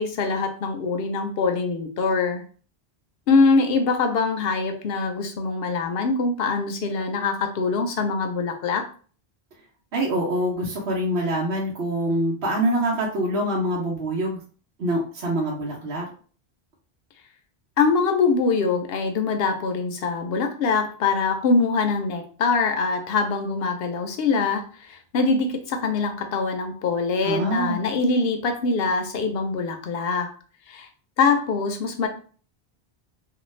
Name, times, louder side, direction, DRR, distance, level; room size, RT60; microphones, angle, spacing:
voice 1, 0.0-2.4 3.3-8.9 17.8-30.3 30.7-30.9 31.2-32.1, left 4 dB, 70° left, 5 dB, 0.8 m, -23 dB
voice 2, 9.9-14.4 14.8-16.1 27.2-27.8, right 1 dB, 75° right, -5 dB, 1.0 m, -25 dB
2.5 x 2.3 x 3.1 m, 0.42 s
omnidirectional pair, 1.1 m